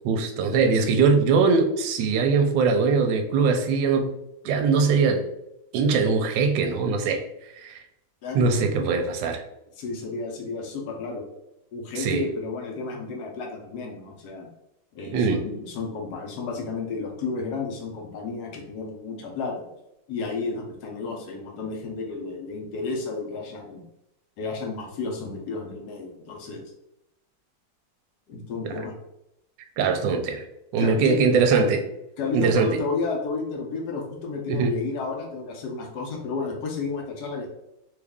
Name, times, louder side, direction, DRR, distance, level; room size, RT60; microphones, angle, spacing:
voice 1, 0.0-4.2 4.4-5.2 5.7-7.2 7.6-7.8 8.3-9.4 12.0-12.2 15.1-15.4 28.6-28.7 29.8-30.4 30.7-31.8 32.3-32.8 34.5-34.7, right 5 dB, 75° right, 5 dB, 1.2 m, -21 dB
voice 2, 9.8-11.2 11.7-14.5 14.9-19.7 20.1-23.8 24.4-26.6 28.3-28.9 30.8-31.2 32.2-37.5, left 4 dB, 65° left, 1 dB, 1.1 m, -32 dB
3.3 x 2.4 x 3.5 m, 0.85 s
omnidirectional pair, 2.1 m